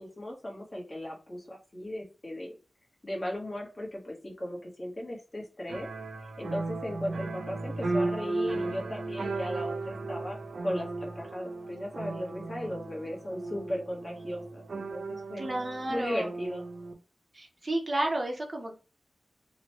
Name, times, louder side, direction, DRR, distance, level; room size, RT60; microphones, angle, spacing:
voice 1, 0.0-2.5 3.0-5.9 6.4-10.4 10.6-15.4 15.9-16.6, left 1 dB, 30° left, -1 dB, 1.0 m, -37 dB
sound 1, 5.7-16.9, right 3 dB, 80° right, 0.5 m, -35 dB
voice 2, 15.4-16.3 17.3-18.7, right 1 dB, 35° right, 1 dB, 0.7 m, -31 dB
2.9 x 2.1 x 2.9 m, 0.32 s
wide cardioid pair, 105°, 0 cm